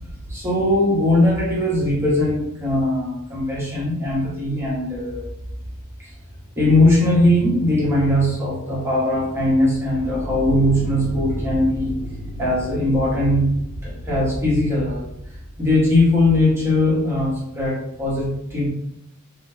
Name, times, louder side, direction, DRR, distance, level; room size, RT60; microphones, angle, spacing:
voice 1, 0.3-5.3 6.0-6.1 6.6-11.9 12.4-13.5 13.8-15.1 15.6-18.7, left 1 dB, 10° right, -6 dB, 0.9 m, -20 dB
sound 1, 9.6-16.8, equal, 50° left, 0.9 m, -33 dB
2.6 x 2.3 x 3.3 m, 0.79 s
head